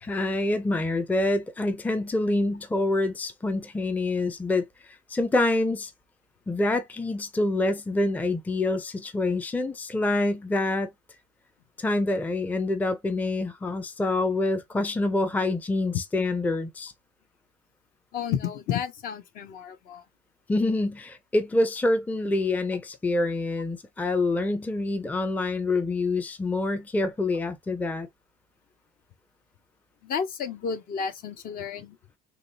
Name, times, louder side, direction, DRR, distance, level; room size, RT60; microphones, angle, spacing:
voice 1, 0.0-5.9 6.5-10.9 11.8-16.9 20.5-28.1, left 2 dB, 10° left, 0.5 m, -26 dB
voice 2, 18.1-20.0 30.0-32.0, left 7 dB, 45° left, 0.6 m, -31 dB
3.1 x 2.6 x 2.6 m
hypercardioid pair, 65°, 20 cm